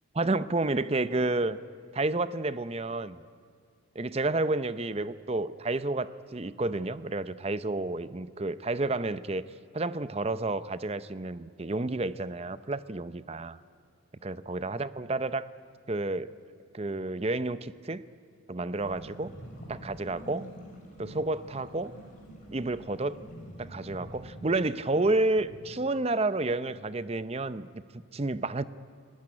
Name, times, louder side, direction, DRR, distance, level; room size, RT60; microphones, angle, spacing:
voice 1, 0.1-1.6 1.9-3.2 4.0-9.4 9.7-13.6 14.2-15.5 15.9-16.3 16.7-18.0 18.5-19.3 19.7-20.5 21.0-21.9 22.5-23.2 23.6-27.7 27.9-28.6, right 2 dB, 30° right, 14 dB, 0.6 m, -30 dB
sound 1, 18.8-25.8, equal, 40° left, 5.9 m, -47 dB
27.5 x 18.0 x 9.8 m, 2.4 s
head